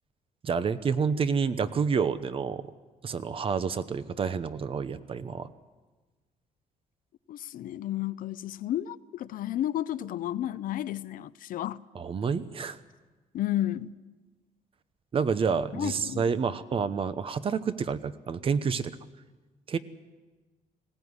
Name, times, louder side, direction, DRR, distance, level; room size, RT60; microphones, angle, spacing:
voice 1, 0.4-2.7 3.0-5.5 11.9-12.8 15.1-19.0 19.7-19.8, right 6 dB, 40° right, 0.9 m, -29 dB
voice 2, 7.3-11.8 13.3-13.9 15.7-16.3, left 12 dB, 70° left, 0.6 m, -32 dB
19.5 x 17.0 x 9.7 m
cardioid pair, 140°, 15 cm